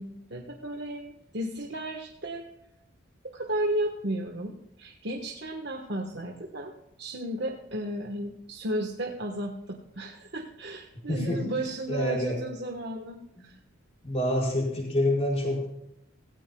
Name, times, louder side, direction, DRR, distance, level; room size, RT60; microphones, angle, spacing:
voice 1, 0.0-2.4 3.3-6.7 7.0-13.6, right 1 dB, 55° right, 1 dB, 1.3 m, -34 dB
voice 2, 11.1-11.4 11.9-12.4 13.4-13.5 14.0-15.7, left 1 dB, 30° left, -3 dB, 5.4 m, -27 dB
16.5 x 16.5 x 2.3 m, 0.83 s
head